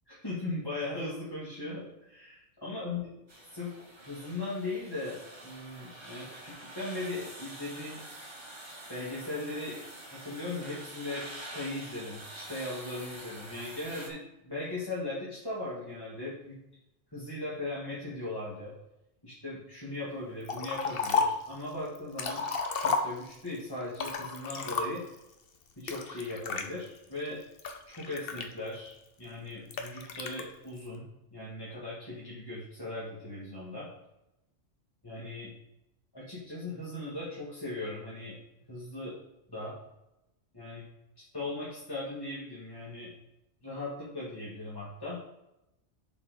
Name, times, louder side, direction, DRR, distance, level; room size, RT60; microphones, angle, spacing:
voice 1, 0.2-3.1 3.5-3.7 4.1-8.0 8.9-9.8 10.1-16.6 17.1-18.7 19.2-22.4 22.8-25.0 25.8-27.4 27.9-31.0 31.3-33.9 35.0-35.5 36.1-38.4 38.7-39.2 39.5-39.8 40.5-40.8 41.2-43.1 43.6-45.2, left 2 dB, 20° left, -8 dB, 1.9 m, -38 dB
sound 1, 3.3-14.1, right 1 dB, 25° right, 1.5 m, -46 dB
Liquid, 20.5-21.5 22.0-23.5 23.9-25.2 25.9-26.7 27.3-28.9 29.7-30.4, left 4 dB, 60° left, 1.0 m, -32 dB
7.3 x 4.5 x 4.8 m, 0.89 s
omnidirectional pair, 1.2 m